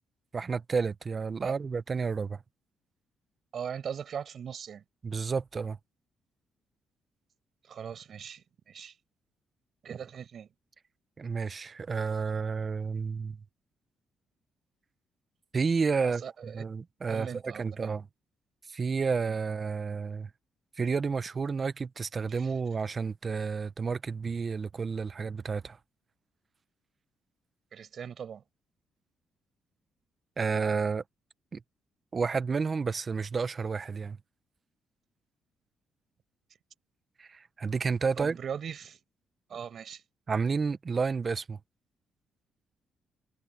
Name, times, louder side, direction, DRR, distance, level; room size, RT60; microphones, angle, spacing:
voice 1, 0.3-2.4 5.0-5.8 11.2-13.4 15.5-18.1 18.7-20.3 20.8-25.8 30.4-31.0 31.5-31.6 32.1-34.2 37.2-38.4 40.3-41.6, right 5 dB, 35° right, 1.1 m, -31 dB
voice 2, 3.5-4.8 7.7-8.9 9.8-10.5 16.0-16.6 17.1-17.9 19.2-19.3 22.3-22.4 27.7-28.4 38.2-39.0 39.5-40.0, right 8 dB, 55° right, 5.6 m, -40 dB
cardioid pair, 90°, 0 cm